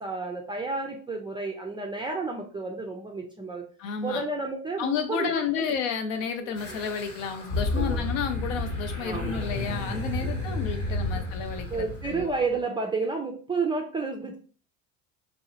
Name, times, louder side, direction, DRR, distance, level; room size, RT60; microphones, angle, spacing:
voice 1, 0.0-3.6 4.0-5.8 6.4-6.8 7.7-8.0 9.0-9.5 10.2-10.3 10.9-11.0 11.7-14.4, right 4 dB, 15° right, 1 dB, 0.3 m, -31 dB
voice 2, 3.8-4.2 4.8-12.3, left 7 dB, 70° left, 6 dB, 0.6 m, -31 dB
sound 1, 6.6-12.5, left 2 dB, 85° left, 1.1 m, -31 dB
2.7 x 2.1 x 2.7 m, 0.39 s
hypercardioid pair, 75°, 41 cm